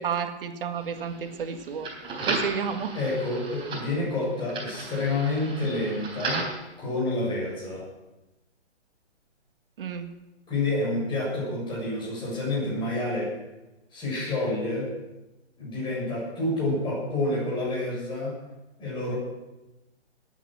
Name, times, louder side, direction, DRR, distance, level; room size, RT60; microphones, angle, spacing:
voice 1, 0.0-1.9 2.2-3.0 9.8-10.1, right 7 dB, 50° right, 7 dB, 1.9 m, -31 dB
sound 1, 0.7-6.6, right 3 dB, 15° right, 4.2 m, -35 dB
voice 2, 2.9-6.5 6.8-7.9 10.5-13.3 13.9-14.9 15.6-18.4 18.8-19.2, left 2 dB, 15° left, -5 dB, 7.2 m, -28 dB
21.0 x 9.3 x 6.3 m, 1.0 s
figure-of-eight pair, 135°, 34 cm